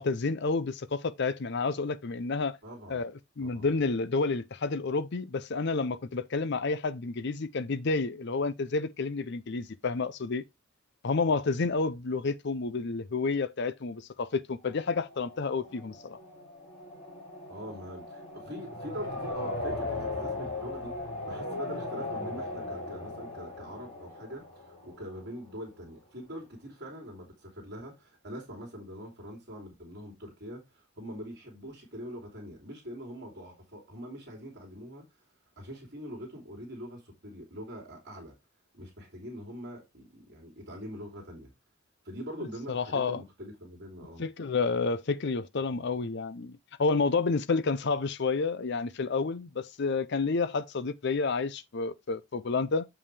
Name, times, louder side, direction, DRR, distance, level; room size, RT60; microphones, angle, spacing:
voice 1, 0.0-2.6 2.9-10.4 11.0-16.2 42.7-43.2 44.2-52.9, left 4 dB, 55° left, 0.6 m, -30 dB
voice 2, 2.6-3.0 3.4-3.7 17.5-20.9 21.2-35.0 35.6-38.3 38.7-41.5 42.0-44.3, equal, 55° right, 2.8 m, -43 dB
sound 1, 14.6-25.5, left 2 dB, 30° left, 5.4 m, -38 dB
7.1 x 5.5 x 3.3 m
head